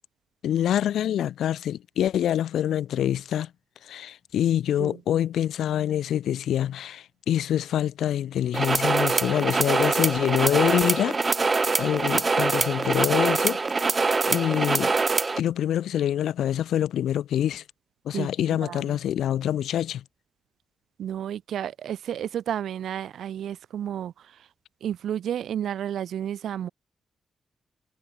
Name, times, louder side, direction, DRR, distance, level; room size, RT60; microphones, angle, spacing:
voice 1, 0.4-3.5 3.9-11.2 11.8-13.6 14.0-14.9 15.4-17.6 18.1-20.0, left 11 dB, 85° left, 1.8 m, -25 dB
sound 1, 8.5-15.4, right 4 dB, 25° right, 1.2 m, -24 dB
voice 2, 18.1-19.0 21.0-24.5 24.8-26.7, right 10 dB, 75° right, 2.4 m, -32 dB
cardioid pair, 135°, 0 cm